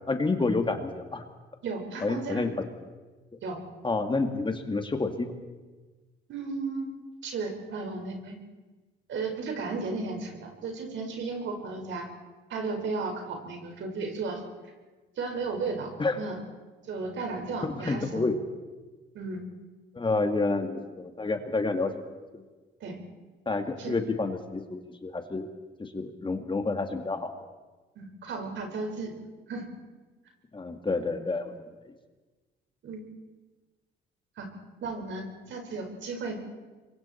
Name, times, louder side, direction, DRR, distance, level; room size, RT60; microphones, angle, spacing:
voice 1, 0.1-1.2 2.0-2.5 3.8-5.3 16.0-16.2 17.6-18.4 19.9-21.9 22.3-22.4 23.5-25.5 25.8-27.3 30.5-31.5, left 3 dB, 25° left, 6 dB, 2.0 m, -29 dB
voice 2, 1.6-2.5 3.4-3.6 6.3-6.9 7.2-8.3 9.1-12.1 12.5-14.4 15.2-16.4 16.9-18.2 19.1-19.4 22.8-23.0 23.8-24.0 27.9-29.2 29.5-29.6 32.8-33.0 34.4-34.5 34.8-36.4, right 3 dB, 70° right, 3 dB, 4.9 m, -34 dB
27.0 x 22.5 x 4.4 m, 1.3 s
cardioid pair, 90°, 20 cm